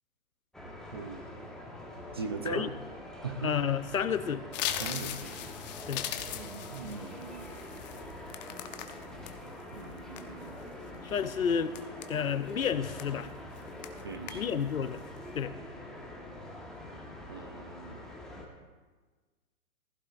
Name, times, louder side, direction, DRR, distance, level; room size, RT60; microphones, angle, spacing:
sound 1, 0.5-18.5, left 1 dB, ahead, 1.3 m, -45 dB
voice 1, 0.9-1.3 2.1-2.7 3.2-3.5 4.8-5.3 6.3-7.6 9.7-10.6 14.0-14.6 17.3-18.0, right 4 dB, 20° right, 6 dB, 0.4 m, -40 dB
voice 2, 3.4-4.5 5.9-6.1 11.0-11.7 12.1-13.3 14.3-15.0 15.3-15.5, left 7 dB, 80° left, 15 dB, 0.8 m, -30 dB
sound 2, 4.5-9.3 9.8-10.6 11.1-11.3 11.7-12.5 13.0-13.3 13.6-14.0 14.3-14.7 15.0-15.3, left 11 dB, 30° left, 0.8 m, -39 dB
15.5 x 15.0 x 2.5 m, 1.3 s
figure-of-eight pair, 125°, 41 cm